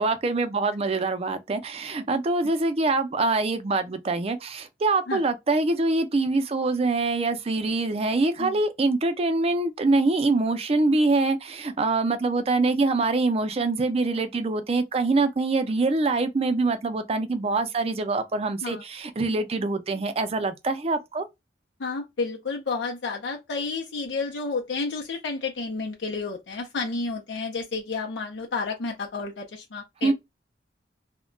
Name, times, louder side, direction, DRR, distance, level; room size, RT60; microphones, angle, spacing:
voice 1, 0.0-21.2 30.0-30.1, right 3 dB, 35° right, 0.4 m, -24 dB
voice 2, 21.8-30.1, left 4 dB, 85° left, 0.5 m, -31 dB
2.2 x 2.1 x 3.6 m
head